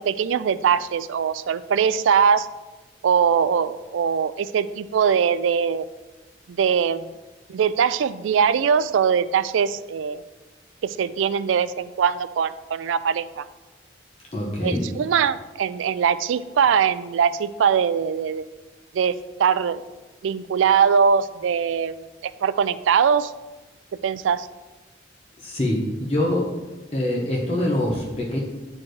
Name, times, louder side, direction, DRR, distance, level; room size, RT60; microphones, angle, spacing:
voice 1, 0.0-2.5 3.0-5.8 6.5-7.1 7.5-10.2 10.8-13.4 14.6-18.4 18.9-19.1 19.4-19.8 20.2-23.3 24.0-24.5, right 7 dB, 90° right, 15 dB, 0.3 m, -21 dB
voice 2, 14.3-14.8 25.4-26.5 26.9-28.4, left 1 dB, 30° left, -4 dB, 0.9 m, -24 dB
9.6 x 4.4 x 3.1 m, 1.1 s
head